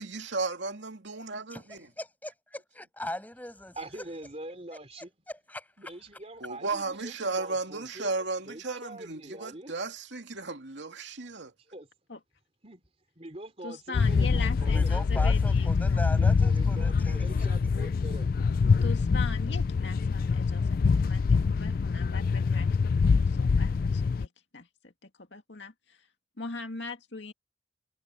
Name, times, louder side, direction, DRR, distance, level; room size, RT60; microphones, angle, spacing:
voice 1, 0.0-1.9 6.4-11.5, right 3 dB, 70° right, 2.6 m, -34 dB
voice 2, 1.5-3.8 4.7-4.8 5.3-5.9 14.6-17.2, left 1 dB, 10° left, 7.9 m, -39 dB
voice 3, 3.8-5.1 5.8-9.7 11.7-11.9 12.6-12.8 13.2-15.3 16.2-18.3, right 1 dB, 35° right, 3.3 m, -44 dB
voice 4, 13.6-16.0 18.8-26.1 26.4-27.3, left 4 dB, 70° left, 2.4 m, -41 dB
sound 1, 13.9-24.3, left 5 dB, 50° left, 0.3 m, -25 dB
head